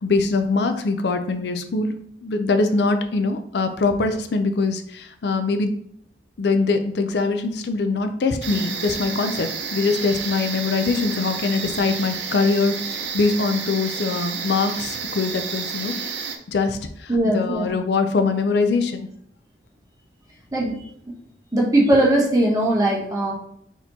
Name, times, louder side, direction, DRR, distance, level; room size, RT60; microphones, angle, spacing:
voice 1, 0.0-1.9 2.2-5.7 6.4-15.9 16.2-19.1, left 3 dB, 70° left, 7 dB, 0.4 m, -23 dB
sound 1, 8.4-16.4, right 6 dB, 80° right, 0.6 m, -30 dB
voice 2, 17.1-17.8 20.5-20.8 21.5-23.3, right 1 dB, 20° right, -4 dB, 1.1 m, -19 dB
4.2 x 2.9 x 4.0 m, 0.66 s
head